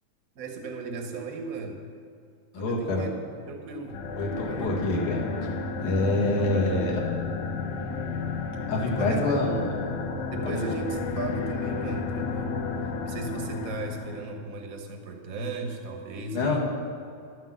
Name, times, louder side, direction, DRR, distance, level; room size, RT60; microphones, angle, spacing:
voice 1, 0.3-1.9 2.6-3.1 3.5-4.9 6.4-6.9 8.8-9.8 10.3-16.6, right 3 dB, 60° right, 3 dB, 0.9 m, -37 dB
voice 2, 2.5-3.0 4.2-5.2 5.8-7.0 8.7-9.8 10.4-10.7 16.3-16.6, left 2 dB, 85° left, -2 dB, 3.6 m, -26 dB
sound 1, 3.9-14.3, left 4 dB, 70° left, 2.1 m, -32 dB
12.0 x 9.0 x 7.9 m, 2.4 s
omnidirectional pair, 3.5 m